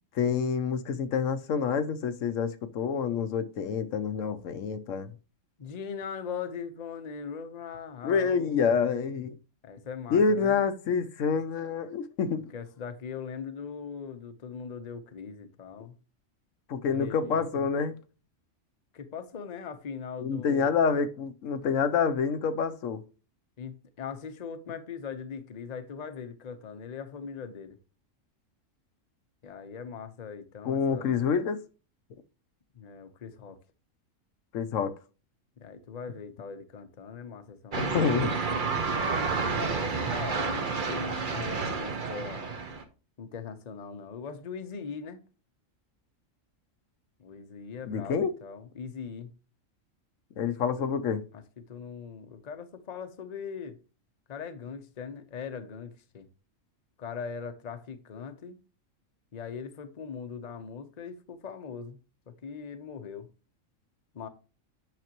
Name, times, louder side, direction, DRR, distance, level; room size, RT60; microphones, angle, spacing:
voice 1, 0.1-5.1 8.0-9.3 10.1-12.5 16.7-18.0 20.2-23.0 30.6-31.6 34.5-35.0 37.8-38.3 47.9-48.3 50.4-51.2, left 6 dB, 80° left, 1.1 m, -27 dB
voice 2, 5.6-8.6 9.6-10.6 12.5-16.0 16.9-17.6 18.9-20.7 23.6-27.8 29.4-31.2 32.7-33.6 35.6-38.3 39.5-42.5 43.2-45.2 47.2-49.3 51.3-53.8 54.3-56.3 57.0-58.6 59.3-62.0 62.3-63.3 64.1-64.3, left 6 dB, 40° left, 0.8 m, -40 dB
sound 1, 37.7-42.8, right 4 dB, 40° right, 1.1 m, -30 dB
9.0 x 5.9 x 2.9 m
omnidirectional pair, 1.3 m